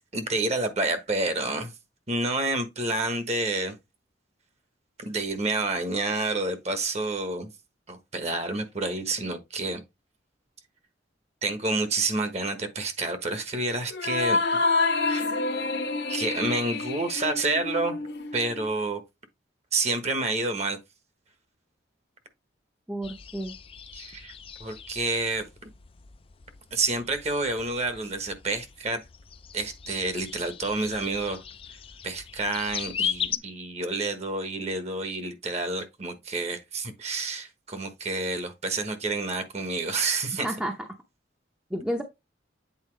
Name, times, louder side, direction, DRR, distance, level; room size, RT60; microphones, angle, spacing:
voice 1, 0.1-1.7 2.1-3.8 5.0-7.5 7.9-9.8 11.4-14.6 15.1-15.4 16.1-18.0 18.3-19.0 19.7-20.8 23.9-24.3 24.6-25.5 26.7-29.0 29.5-31.4 32.0-40.5, right 2 dB, 35° right, 1.2 m, -29 dB
sound 1, 13.9-18.7, left 3 dB, 60° left, 1.0 m, -28 dB
voice 2, 22.9-23.5 40.4-40.7 41.7-42.0, equal, 5° right, 0.7 m, -30 dB
sound 2, 23.0-33.4, left 8 dB, 30° left, 0.4 m, -38 dB
8.3 x 4.1 x 3.2 m
head